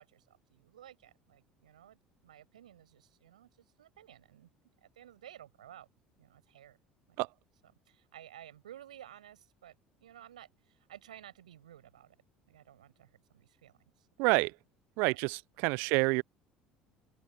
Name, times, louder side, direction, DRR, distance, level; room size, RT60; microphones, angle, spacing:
voice 1, 0.0-3.5 3.8-4.5 4.8-5.9 6.2-6.8 7.6-9.7 10.0-12.2 12.5-14.1 15.1-15.2 15.6-16.0, right 11 dB, 75° right, 5.6 m, -54 dB
voice 2, 14.2-14.5 15.0-16.2, right 29 dB, 60° right, 0.5 m, -28 dB
open air
figure-of-eight pair, 60°, 4 cm